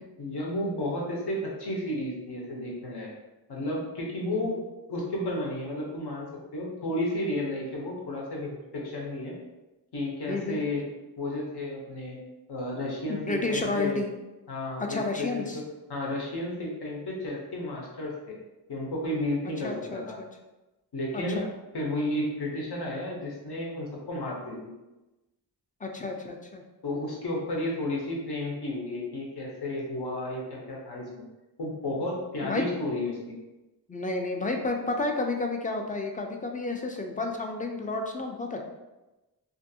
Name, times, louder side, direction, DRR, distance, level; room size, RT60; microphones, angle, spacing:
voice 1, 0.2-3.1 3.5-4.6 4.9-6.3 6.5-9.4 9.9-10.9 11.2-12.2 12.5-14.0 14.5-15.6 15.9-18.4 18.7-20.2 20.9-21.4 21.7-24.7 26.8-31.2 31.6-33.4, left 1 dB, 75° left, -2 dB, 0.9 m, -32 dB
voice 2, 4.3-4.6 10.3-10.6 13.1-14.1 14.9-15.6 19.6-20.3 21.3-21.5 25.8-26.6 32.4-32.6 33.9-38.6, left 3 dB, 20° left, 2 dB, 0.4 m, -31 dB
2.6 x 2.5 x 2.6 m, 1.0 s
wide cardioid pair, 65°, 40 cm